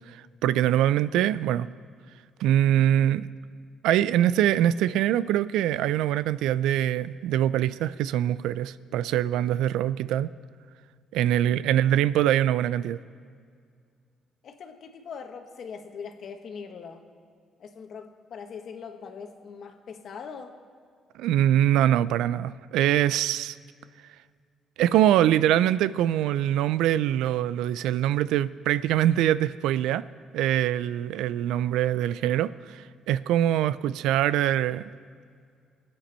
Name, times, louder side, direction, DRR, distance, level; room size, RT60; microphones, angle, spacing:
voice 1, 0.1-1.7 2.4-3.3 3.8-10.3 11.1-13.0 21.1-23.6 24.8-30.0 30.3-34.9, right 12 dB, 90° right, 17 dB, 0.4 m, -23 dB
voice 2, 14.4-17.0 17.6-20.6, left 6 dB, 60° left, 5 dB, 1.4 m, -41 dB
24.5 x 8.8 x 4.4 m, 2.2 s
cardioid pair, 95°, 0 cm